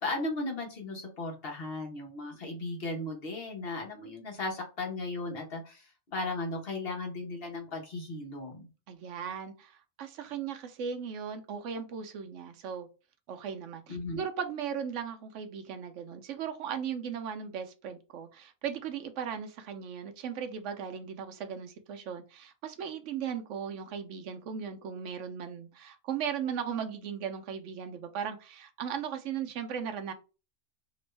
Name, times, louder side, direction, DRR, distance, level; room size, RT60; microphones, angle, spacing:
voice 1, 0.0-8.7 13.9-14.2, left 2 dB, 50° left, 1.2 m, -36 dB
voice 2, 8.9-12.9 13.3-30.1, right 7 dB, 75° right, 0.9 m, -37 dB
3.0 x 2.6 x 3.2 m
omnidirectional pair, 1.3 m